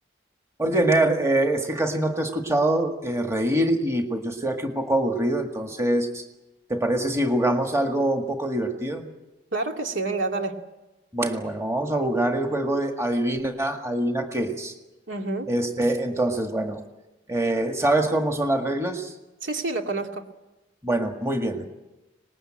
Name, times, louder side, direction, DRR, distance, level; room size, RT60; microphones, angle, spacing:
voice 1, 0.6-6.2 6.7-9.0 11.1-14.7 15.5-16.8 17.3-19.1 20.8-21.7, right 1 dB, 15° right, 4 dB, 1.8 m, -24 dB
voice 2, 9.5-10.6 15.1-15.5 19.4-20.2, right 3 dB, 85° right, 3 dB, 2.4 m, -28 dB
25.5 x 20.0 x 8.9 m, 1.0 s
head